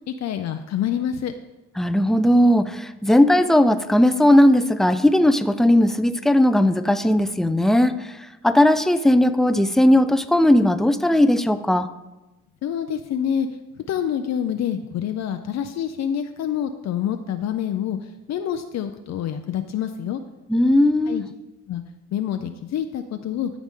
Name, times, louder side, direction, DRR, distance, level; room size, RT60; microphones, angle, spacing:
voice 1, 0.2-1.3 12.6-13.5 13.9-18.0 18.3-20.2 21.1-21.2 21.7-21.8 22.1-23.5, left 9 dB, 60° left, 7 dB, 0.6 m, -26 dB
voice 2, 1.8-7.9 8.4-11.9 20.5-21.2, left 1 dB, ahead, 11 dB, 0.4 m, -17 dB
13.0 x 4.9 x 3.7 m, 1.0 s
cardioid pair, 90°, 30 cm